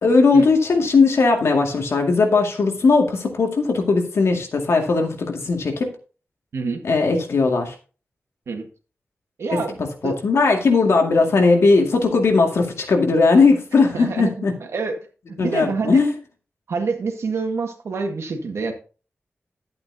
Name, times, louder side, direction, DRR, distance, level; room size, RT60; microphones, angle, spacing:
voice 1, 0.0-5.9 6.8-7.7 9.5-9.6 10.0-14.5 15.4-16.1, left 4 dB, 80° left, 2.1 m, -18 dB
voice 2, 9.4-10.1 13.9-14.5 14.7-15.0 15.3-16.0 16.7-18.7, right 4 dB, 85° right, 1.7 m, -26 dB
11.5 x 8.6 x 2.8 m
wide cardioid pair, 120°, 5 cm